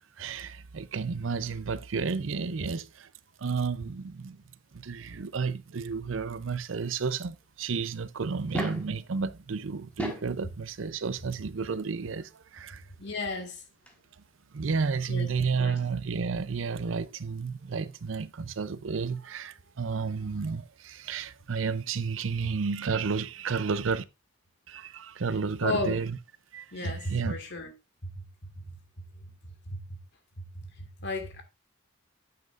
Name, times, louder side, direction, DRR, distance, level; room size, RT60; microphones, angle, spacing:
voice 1, 0.2-3.1 3.4-4.4 4.7-12.8 14.5-24.0 24.7-26.2 26.5-27.4, right 5 dB, 85° right, 0.6 m, -32 dB
sound 1, 8.3-8.9 9.8-10.4 11.7-11.8 13.6-13.7 13.9-14.0, equal, 5° left, 1.6 m, -35 dB
voice 2, 13.0-13.6 15.1-15.3 15.6-15.8 25.6-26.0 26.7-27.7 28.0-28.7 29.7-30.0 30.4-31.4, left 2 dB, 65° left, 1.9 m, -34 dB
9.4 x 7.7 x 2.5 m
head